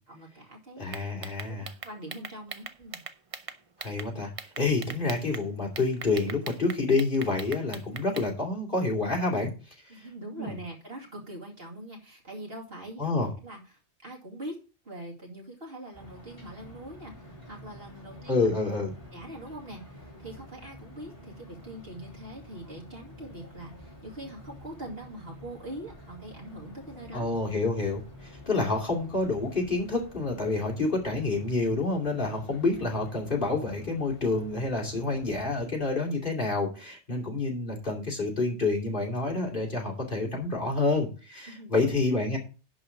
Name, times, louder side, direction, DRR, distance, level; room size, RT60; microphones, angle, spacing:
voice 1, 0.1-0.9 1.5-3.0 9.9-14.6 14.8-18.5 19.1-27.3 41.5-41.9, right 1 dB, 60° right, -1 dB, 2.8 m, -43 dB
voice 2, 0.8-1.7 3.8-9.5 9.9-10.0 10.4-10.6 13.0-13.3 18.3-18.9 27.1-42.4, left 3 dB, 50° left, -1 dB, 2.9 m, -28 dB
sound 1, 0.9-4.1 4.4-5.4 5.8-8.3, right 5 dB, 35° right, 0.7 m, -40 dB
sound 2, 15.9-35.7, equal, 35° left, 3.5 m, -49 dB
11.0 x 4.0 x 7.1 m, 0.34 s
omnidirectional pair, 1.2 m